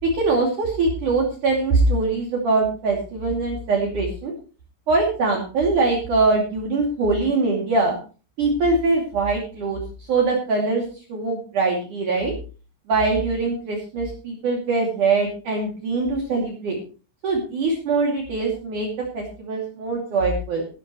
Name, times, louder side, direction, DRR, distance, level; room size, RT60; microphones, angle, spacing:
voice 1, 0.0-4.3 4.9-8.0 8.4-9.8 10.1-10.8 11.1-12.3 12.9-16.8 17.2-20.7, right 3 dB, 50° right, -1 dB, 3.8 m, -22 dB
16.0 x 13.5 x 3.1 m, 0.36 s
omnidirectional pair, 5.2 m